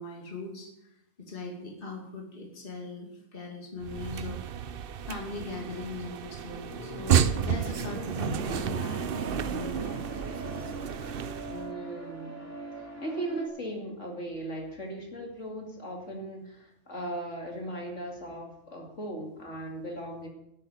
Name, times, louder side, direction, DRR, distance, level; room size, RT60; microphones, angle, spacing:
voice 1, 0.0-4.5 5.1-10.2, left 3 dB, 40° left, 0 dB, 2.6 m, -40 dB
sound 1, 3.8-11.7, right 8 dB, 55° right, 0.7 m, -31 dB
sound 2, 6.5-13.5, right 1 dB, 10° left, 3.2 m, -41 dB
voice 2, 11.5-20.3, right 1 dB, 55° left, 1 dB, 2.9 m, -38 dB
12.5 x 8.6 x 9.5 m, 0.83 s
omnidirectional pair, 1.5 m